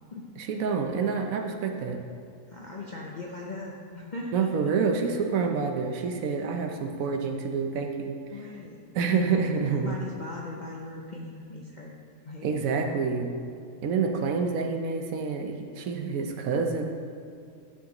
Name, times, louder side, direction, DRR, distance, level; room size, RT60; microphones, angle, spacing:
voice 1, 0.4-2.1 4.3-8.2 8.9-10.0 12.4-13.3 13.8-16.9, right 5 dB, 70° right, 4 dB, 1.0 m, -27 dB
voice 2, 2.5-4.5 8.3-8.8 9.6-11.9 12.2-13.0, left 2 dB, 50° left, -2 dB, 0.5 m, -39 dB
11.0 x 6.3 x 2.9 m, 2.2 s
omnidirectional pair, 1.6 m